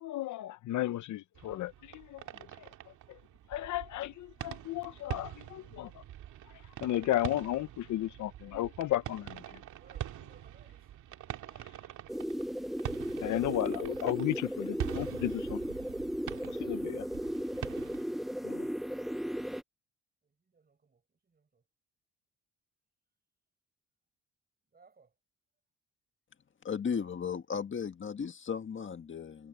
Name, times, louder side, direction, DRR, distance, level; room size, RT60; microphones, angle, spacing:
voice 1, 0.0-2.2 3.5-5.9 6.8-9.4 13.2-15.6 16.6-17.1 18.4-18.6, left 14 dB, 75° left, 0.8 m, -34 dB
fireworks big medium various Montreal Canada, 1.3-18.0, right 11 dB, 80° right, 2.3 m, -44 dB
voice 2, 9.8-11.7 20.5-21.0 21.3-21.6 24.7-25.1, right 5 dB, 30° right, 5.4 m, -64 dB
sound 1, 12.1-19.6, equal, ahead, 0.5 m, -36 dB
voice 3, 26.6-29.5, left 6 dB, 40° left, 1.7 m, -35 dB
cardioid pair, 90°, 30 cm